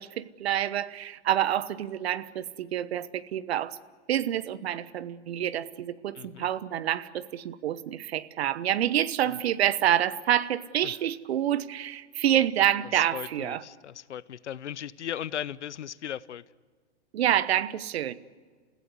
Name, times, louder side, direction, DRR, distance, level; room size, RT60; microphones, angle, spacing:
voice 1, 0.0-3.8 4.1-13.6 17.1-18.2, right 11 dB, 65° right, 1.1 m, -27 dB
voice 2, 6.1-6.5 9.2-9.4 10.8-10.9 12.9-16.4, left 10 dB, 80° left, 0.8 m, -37 dB
29.5 x 16.0 x 9.7 m
hypercardioid pair, 130°, 34 cm